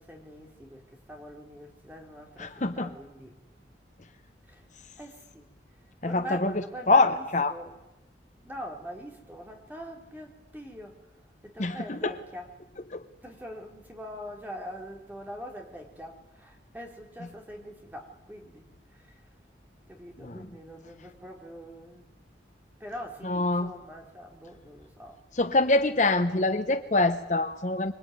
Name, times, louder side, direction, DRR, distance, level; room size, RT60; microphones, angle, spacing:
voice 1, 0.0-3.3 4.4-4.7 5.0-5.5 5.8-7.8 8.4-12.5 13.2-19.3 19.9-22.2 22.8-25.2, equal, 10° right, 2 dB, 3.5 m, -43 dB
voice 2, 2.4-2.9 6.0-6.5 6.9-7.6 11.6-12.1 12.9-13.0 20.2-20.4 23.2-23.7 25.4-27.9, left 2 dB, 40° left, 9 dB, 1.0 m, -25 dB
26.0 x 23.0 x 9.3 m, 0.96 s
head